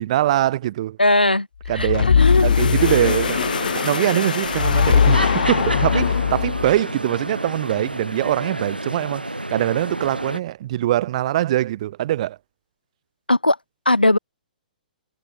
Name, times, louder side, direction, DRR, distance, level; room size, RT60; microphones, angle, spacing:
voice 1, 0.0-1.0 1.7-2.1 2.4-12.4, right 13 dB, 45° right, 0.8 m, -23 dB
voice 2, 1.0-1.5 1.7-2.5 13.3-13.6 13.9-14.2, left 2 dB, 90° left, 0.7 m, -18 dB
sound 1, 1.6-6.9, left 7 dB, 65° left, 0.4 m, -20 dB
sound 2, 2.8-10.4, right 1 dB, 90° right, 5.9 m, -29 dB
figure-of-eight pair, 120°, 5 cm